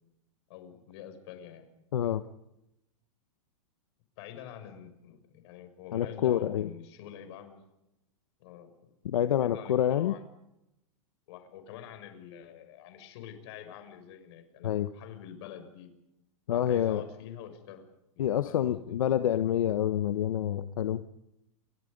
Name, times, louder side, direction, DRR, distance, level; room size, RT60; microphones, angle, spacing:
voice 1, 0.5-1.7 4.2-7.6 8.4-8.9 9.4-10.2 11.3-15.9 16.5-17.9 18.2-19.0, left 9 dB, 50° left, 7 dB, 6.7 m, -46 dB
voice 2, 1.9-2.2 5.9-6.7 9.0-10.1 14.6-14.9 16.5-17.0 18.2-21.0, left 10 dB, 80° left, 9 dB, 1.4 m, -27 dB
29.0 x 24.5 x 5.5 m, 0.87 s
supercardioid pair, 155°, 17 cm